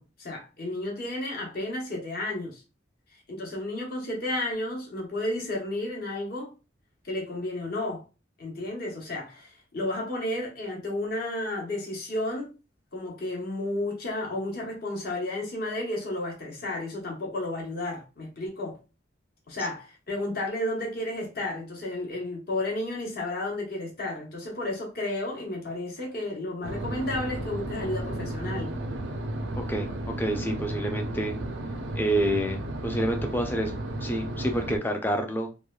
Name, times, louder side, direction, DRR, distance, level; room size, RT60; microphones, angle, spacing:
voice 1, 0.0-2.6 3.3-6.5 7.0-8.0 8.4-12.5 12.9-18.8 19.5-28.7, left 1 dB, 55° left, 1.0 m, -32 dB
sound 1, 26.6-34.8, right 1 dB, 85° right, 0.5 m, -33 dB
voice 2, 29.6-29.9 30.2-31.4 32.0-35.5, right 1 dB, 10° left, 0.4 m, -28 dB
3.0 x 2.2 x 2.2 m
head